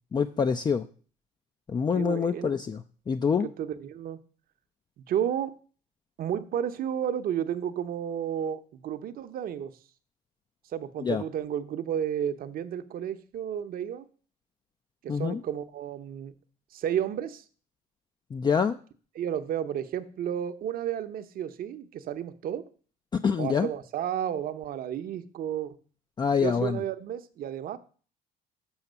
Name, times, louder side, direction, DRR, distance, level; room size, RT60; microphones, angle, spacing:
voice 1, 0.1-0.8 1.7-2.8 3.1-3.5 11.0-11.2 15.1-15.4 18.3-18.8 23.2-23.7 26.2-26.8, left 6 dB, 25° left, 8 dB, 0.4 m, -26 dB
voice 2, 1.9-2.6 3.4-4.2 5.0-5.5 6.2-9.7 10.7-14.1 15.0-16.3 16.7-17.4 19.1-22.6 23.4-25.8 26.4-27.8, right 9 dB, 60° right, 11 dB, 0.8 m, -32 dB
7.1 x 5.9 x 6.6 m, 0.41 s
cardioid pair, 110°, 17 cm